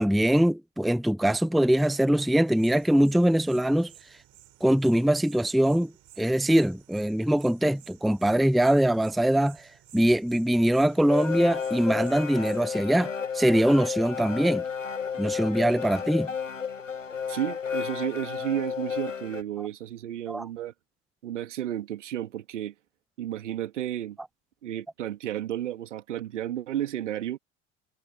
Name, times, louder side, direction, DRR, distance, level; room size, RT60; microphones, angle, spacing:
voice 1, 0.0-3.9 4.6-5.9 6.2-14.6 15.2-16.3 19.6-19.7 20.3-20.4, right 1 dB, ahead, 0.7 m, -23 dB
sound 1, 2.5-12.7, right 15 dB, 50° right, 5.7 m, -55 dB
sound 2, 10.6-19.4, left 7 dB, 90° left, 1.2 m, -32 dB
voice 2, 17.3-20.7 21.2-22.7 23.2-24.2 24.6-27.4, right 12 dB, 75° right, 2.8 m, -32 dB
figure-of-eight pair, 65°, 37 cm